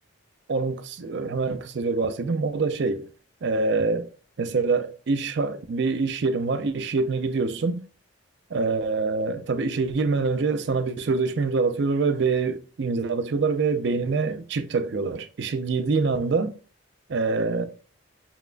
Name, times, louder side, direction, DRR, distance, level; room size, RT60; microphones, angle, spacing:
voice 1, 0.5-3.1 3.4-4.1 4.4-7.8 8.5-16.5 17.1-17.6, right 4 dB, 60° right, 0.4 m, -25 dB
7.0 x 2.4 x 2.2 m
head